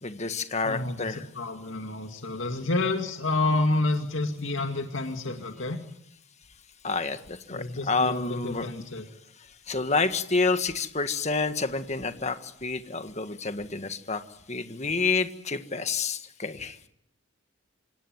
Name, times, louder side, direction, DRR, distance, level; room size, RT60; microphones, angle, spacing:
voice 1, 0.0-1.3 6.8-8.7 9.7-14.2 14.5-16.8, left 4 dB, 35° left, 9 dB, 1.7 m, -28 dB
voice 2, 0.6-5.8 7.5-9.1, left 2 dB, 70° left, 5 dB, 2.2 m, -29 dB
27.0 x 17.0 x 9.4 m, 0.73 s
head